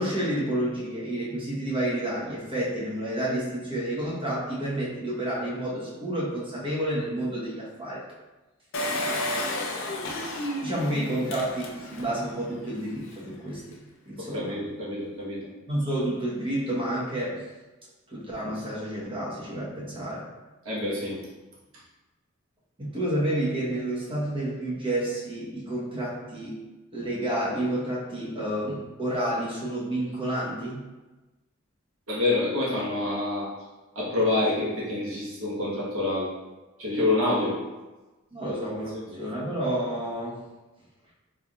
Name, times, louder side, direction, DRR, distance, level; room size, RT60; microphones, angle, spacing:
voice 1, 0.0-8.0 10.6-13.8 14.1-14.6 15.7-17.4 18.1-20.3 22.8-26.6 26.9-30.8 38.3-38.9 39.2-40.4, right 1 dB, 25° right, -6 dB, 1.1 m, -30 dB
Engine, 8.7-12.2 12.7-12.8 13.0-13.1, left 1 dB, 65° left, 0.6 m, -31 dB
voice 2, 14.2-15.5 20.6-21.2 32.1-33.5 33.9-36.3 36.8-37.6 38.5-38.6 39.1-39.2, left 2 dB, 85° right, -7 dB, 1.2 m, -27 dB
3.9 x 3.4 x 2.3 m, 1.1 s
head